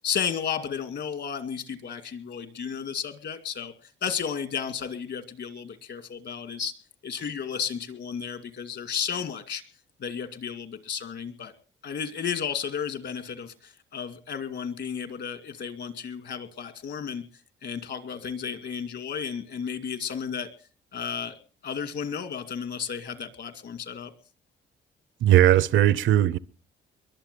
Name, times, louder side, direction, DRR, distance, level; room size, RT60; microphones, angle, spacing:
voice 1, 0.0-6.7 7.0-9.6 10.0-11.5 11.8-17.2 17.6-20.5 20.9-21.4 21.6-24.1, left 7 dB, 60° left, 2.4 m, -33 dB
voice 2, 25.2-26.4, right 12 dB, 75° right, 0.7 m, -18 dB
22.5 x 7.6 x 6.8 m
cardioid pair, 90°, 20 cm